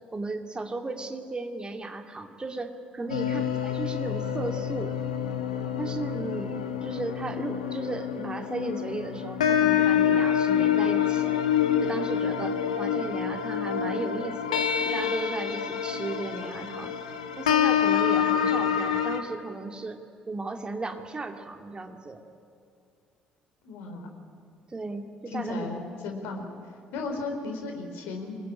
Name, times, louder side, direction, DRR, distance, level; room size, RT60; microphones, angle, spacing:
voice 1, 0.1-4.9 5.8-11.3 11.8-17.0 17.4-20.0 20.3-22.2 24.7-25.7, right 3 dB, 25° right, 5 dB, 2.6 m, -35 dB
sound 1, 3.1-19.2, left 9 dB, 75° left, 1.5 m, -27 dB
voice 2, 23.6-24.1 25.3-26.5 26.9-28.4, left 3 dB, 60° left, 3 dB, 4.4 m, -35 dB
26.0 x 22.0 x 9.9 m, 2.4 s
figure-of-eight pair, 45°, 4 cm